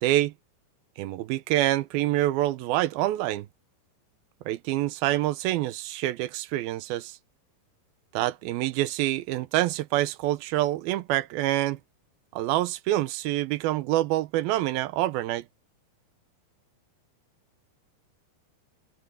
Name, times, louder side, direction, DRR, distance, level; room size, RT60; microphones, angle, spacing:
voice 1, 0.0-0.3 1.0-3.5 4.5-7.2 8.1-11.8 12.3-15.5, right 15 dB, 85° right, 2.7 m, -26 dB
omnidirectional pair, 4.4 m